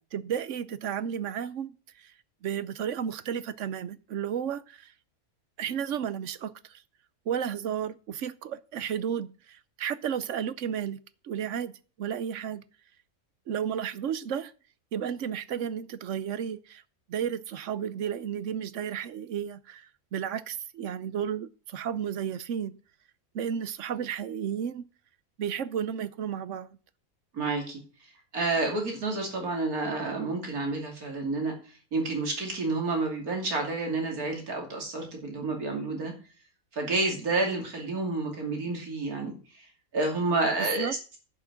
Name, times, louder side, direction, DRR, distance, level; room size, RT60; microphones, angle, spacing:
voice 1, 0.1-1.7 2.0-2.1 2.4-4.9 5.6-6.8 7.3-11.7 12.0-12.6 13.5-14.5 14.9-16.8 17.1-22.8 23.3-24.8 25.4-26.7 40.6-40.9, right 8 dB, 65° right, 1.0 m, -33 dB
voice 2, 27.3-36.1 36.7-39.7 39.9-41.0, right 3 dB, 90° right, 3.3 m, -30 dB
10.5 x 5.9 x 7.9 m
omnidirectional pair, 1.5 m